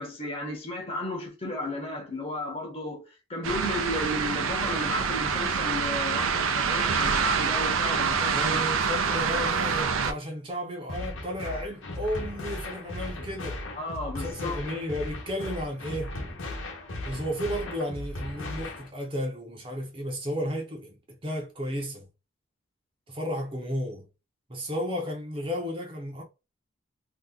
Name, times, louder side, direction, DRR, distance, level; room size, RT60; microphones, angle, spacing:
voice 1, 0.0-3.0 3.3-8.6 13.8-14.6, left 1 dB, 30° left, 0.9 m, -33 dB
sound 1, 3.4-10.1, right 5 dB, 85° right, 0.5 m, -26 dB
voice 2, 8.3-13.6 14.2-16.2 17.0-22.1 23.1-24.1 24.5-26.2, equal, 25° right, 0.7 m, -33 dB
sound 2, 10.9-18.9, left 1 dB, 75° left, 1.0 m, -37 dB
2.8 x 2.4 x 3.6 m
head